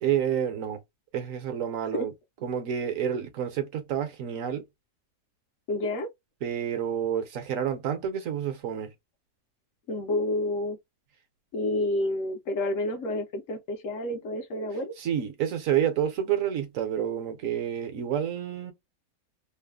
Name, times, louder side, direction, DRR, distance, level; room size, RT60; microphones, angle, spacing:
voice 1, 0.0-0.8 1.1-2.1 2.4-4.6 6.4-8.9 15.0-18.7, right 9 dB, 65° right, 1.1 m, -29 dB
voice 2, 5.7-6.1 9.9-10.8 11.5-14.9, left 1 dB, 65° left, 1.0 m, -29 dB
3.2 x 2.1 x 2.3 m
omnidirectional pair, 1.6 m